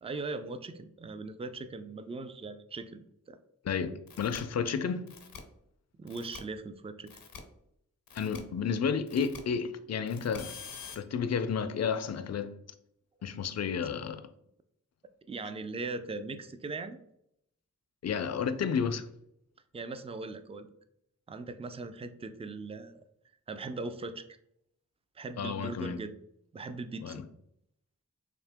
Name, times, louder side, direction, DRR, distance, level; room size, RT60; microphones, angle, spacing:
voice 1, 0.0-3.4 6.0-7.2 15.3-17.0 19.7-20.7 21.3-23.0 23.5-24.2 25.2-26.2 26.5-27.2, right 3 dB, 20° right, 0.3 m, -39 dB
voice 2, 3.6-5.1 8.1-10.5 11.0-12.6 13.2-14.3 18.0-19.1 25.4-26.0 27.0-27.3, left 6 dB, 50° left, 0.4 m, -31 dB
sound 1, 4.1-4.4 5.1-5.4 6.1-6.4 7.1-7.4 8.1-8.4 9.1-9.4 10.1-11.0, left 6 dB, 85° left, 0.7 m, -46 dB
3.7 x 2.7 x 3.4 m
wide cardioid pair, 55°, 33 cm